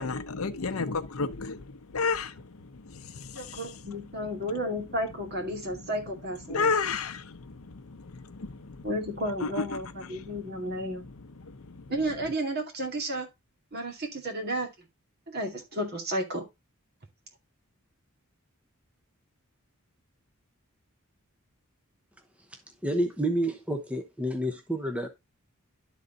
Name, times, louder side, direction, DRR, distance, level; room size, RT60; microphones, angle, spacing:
voice 1, 0.0-3.6 6.5-8.9 9.6-9.8 10.1-10.3 11.4-11.9, left 4 dB, 80° left, 0.8 m, -32 dB
voice 2, 3.3-6.7 8.8-11.1 11.9-13.3 13.7-14.7 15.3-16.4, right 1 dB, 50° right, 2.3 m, -32 dB
voice 3, 22.8-25.1, right 1 dB, 5° right, 0.9 m, -29 dB
11.5 x 4.1 x 3.9 m
head